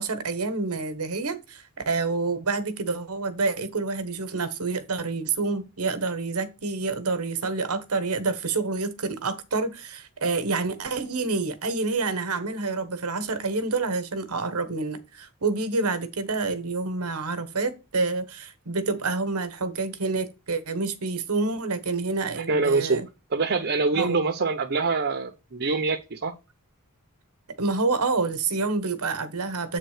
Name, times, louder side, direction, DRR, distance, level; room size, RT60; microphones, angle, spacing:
voice 1, 0.0-23.0 23.9-24.2 27.6-29.8, right 3 dB, 85° right, 1.2 m, -28 dB
voice 2, 22.4-23.0 23.3-26.3, right 4 dB, 50° right, 0.8 m, -25 dB
7.9 x 3.6 x 4.9 m
head